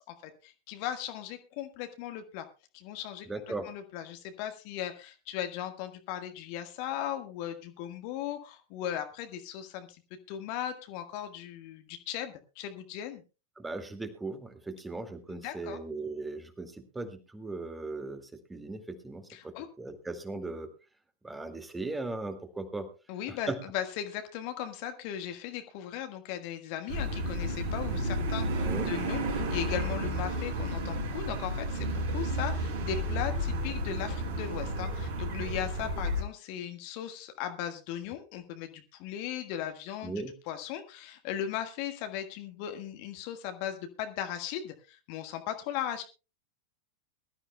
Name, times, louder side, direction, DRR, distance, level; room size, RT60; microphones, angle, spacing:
voice 1, 0.0-2.5 2.7-3.3 3.6-10.0 10.3-13.2 15.3-15.8 19.3-19.7 23.1-40.1 40.5-46.0, left 10 dB, 45° left, 7 dB, 1.6 m, -37 dB
voice 2, 3.3-3.7 13.6-18.2 18.5-20.7 21.2-22.9 23.3-23.6 28.7-28.9 40.0-40.3, right 2 dB, 10° right, 6 dB, 2.1 m, -38 dB
sound 1, 26.9-36.2, right 1 dB, 60° right, 4.4 m, -32 dB
22.5 x 13.0 x 2.3 m, 0.31 s
figure-of-eight pair, 90°, 0 cm